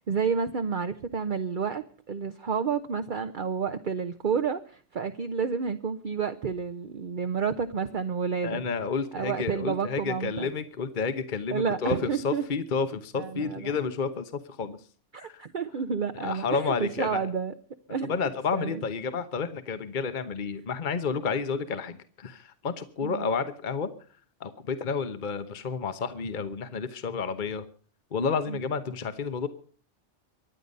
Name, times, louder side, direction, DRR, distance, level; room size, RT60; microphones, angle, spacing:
voice 1, 0.0-8.6 9.1-10.5 11.5-12.5 13.2-13.7 15.1-17.5 17.9-18.1 18.5-18.8 23.0-23.3 28.5-28.6, right 6 dB, 45° right, 9 dB, 0.9 m, -30 dB
voice 2, 8.4-14.8 15.2-15.4 16.1-17.3 18.1-23.9 24.4-27.6 28.1-29.5, left 5 dB, 45° left, 10 dB, 1.1 m, -30 dB
24.0 x 9.9 x 5.4 m, 0.43 s
omnidirectional pair, 1.2 m